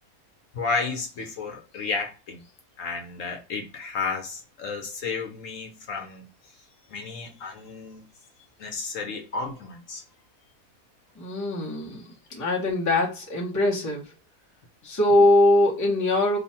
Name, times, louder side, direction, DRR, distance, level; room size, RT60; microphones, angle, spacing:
voice 1, 0.5-2.4 2.8-6.2 6.9-8.0 8.6-10.0, left 4 dB, 65° left, 1.1 m, -32 dB
voice 2, 11.2-12.0 12.3-14.1 14.8-16.4, left 1 dB, 15° left, 0.8 m, -22 dB
3.0 x 2.3 x 4.1 m
omnidirectional pair, 1.5 m